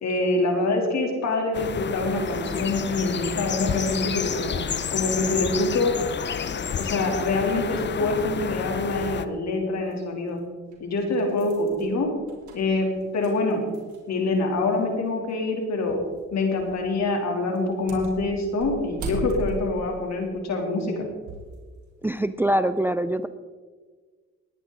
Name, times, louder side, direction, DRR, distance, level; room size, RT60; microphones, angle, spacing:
voice 1, 0.0-4.6 4.9-5.9 6.8-10.4 10.8-12.1 12.5-13.6 14.1-16.0 16.3-21.1, left 2 dB, 65° left, 2 dB, 3.3 m, -25 dB
sound 1, 1.5-9.2, left 7 dB, 35° left, 0.7 m, -30 dB
sound 2, 9.9-10.0 10.7-14.2 14.5-14.6 15.9-16.1 16.5-16.9 17.6-21.6 22.0-22.2, right 1 dB, 70° right, 3.5 m, -38 dB
voice 2, 22.0-23.3, right 1 dB, 5° right, 12 dB, 0.5 m, -24 dB
20.0 x 9.9 x 4.0 m, 1.4 s
cardioid pair, 90°, 30 cm